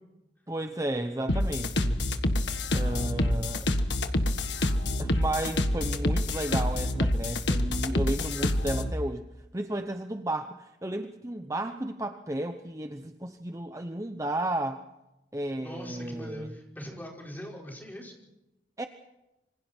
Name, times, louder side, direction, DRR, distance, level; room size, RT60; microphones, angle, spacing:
voice 1, 0.5-2.1 2.7-3.7 5.0-9.3 9.5-14.8 15.3-16.5 18.8-18.9, right 1 dB, 20° right, 7 dB, 0.9 m, -33 dB
sound 1, 1.3-8.9, left 1 dB, 80° left, 1.6 m, -27 dB
voice 2, 15.6-18.1, equal, 10° left, -1 dB, 5.2 m, -41 dB
27.5 x 25.5 x 4.5 m, 0.95 s
head